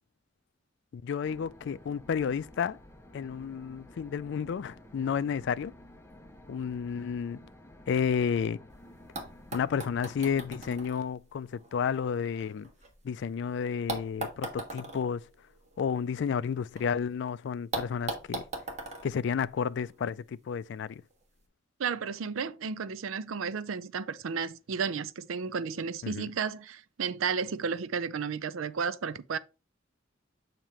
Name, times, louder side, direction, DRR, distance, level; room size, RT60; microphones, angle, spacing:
voice 1, 0.9-2.8 3.1-5.7 6.5-7.4 7.9-8.6 9.5-12.7 13.0-15.2 15.8-18.4 19.0-21.0 26.0-26.3, left 7 dB, 60° left, 0.3 m, -31 dB
sound 1, 1.2-10.9, left 1 dB, 15° left, 0.6 m, -52 dB
sound 2, 8.7-8.8 9.1-13.2 13.9-16.8 17.1-17.2 17.7-20.1 21.1-21.2, right 2 dB, 35° right, 1.5 m, -40 dB
voice 2, 21.8-29.4, right 6 dB, 90° right, 0.5 m, -33 dB
7.3 x 2.9 x 4.8 m
head